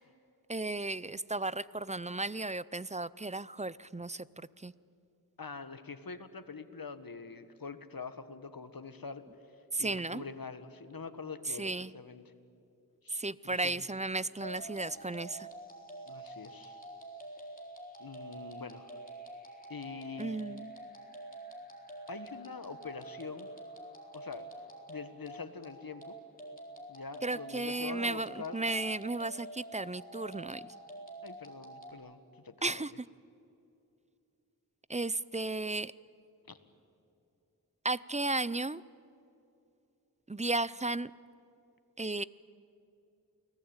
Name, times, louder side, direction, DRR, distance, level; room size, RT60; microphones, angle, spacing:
voice 1, 0.5-4.2 4.6-4.7 9.7-10.2 11.6-11.9 13.1-15.5 20.2-20.7 27.2-30.7 32.6-33.1 34.9-35.9 37.8-38.8 40.3-41.1 42.0-42.2, right 2 dB, 20° right, 19 dB, 0.5 m, -34 dB
voice 2, 5.4-9.2 9.8-12.3 13.0-13.8 16.1-16.9 18.0-18.9 19.7-20.4 22.1-23.5 24.1-24.5 24.9-26.2 26.9-28.6 31.2-32.2 32.4-32.8 36.5-36.6, left 5 dB, 65° left, 11 dB, 1.5 m, -44 dB
sound 1, 14.4-31.9, right 1 dB, 20° left, 4.0 m, -47 dB
29.0 x 19.0 x 8.9 m, 2.7 s
wide cardioid pair, 50°, 38 cm